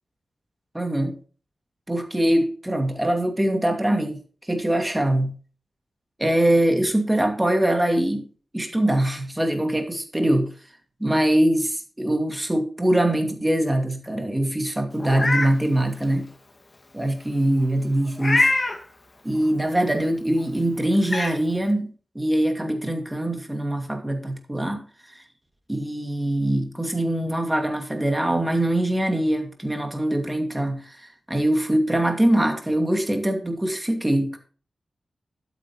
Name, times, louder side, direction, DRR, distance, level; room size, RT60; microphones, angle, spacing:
voice 1, 0.7-1.1 1.9-4.2 4.5-5.3 6.2-8.3 8.5-10.5 11.0-16.3 16.9-18.5 19.2-21.9 22.1-24.8 25.7-34.4, right 1 dB, 10° right, 2.4 m, -23 dB
Meow, 15.0-15.5 16.0-16.1 18.2-18.8 20.4-20.5 21.0-21.3, left 2 dB, 30° left, 2.0 m, -22 dB
12.0 x 9.1 x 3.1 m
wide cardioid pair, 135°, 0 cm